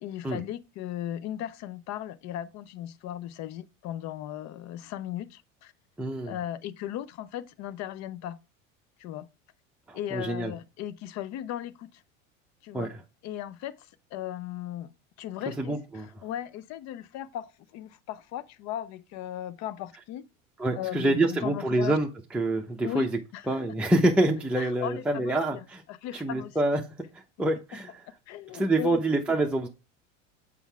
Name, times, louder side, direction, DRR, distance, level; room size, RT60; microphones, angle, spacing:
voice 1, 0.0-5.7 6.3-8.4 9.0-9.3 9.9-11.9 12.6-12.9 13.2-14.9 15.2-20.2 20.8-22.0 22.8-23.6 24.6-26.6 28.3-29.0, left 11 dB, 45° left, 0.6 m, -37 dB
voice 2, 6.0-6.4 9.9-10.5 12.7-13.0 15.6-16.1 20.6-23.2 23.5-25.8 26.1-28.0 28.5-29.7, right 2 dB, 5° right, 0.8 m, -27 dB
7.1 x 4.7 x 3.4 m
hypercardioid pair, 80°, 39 cm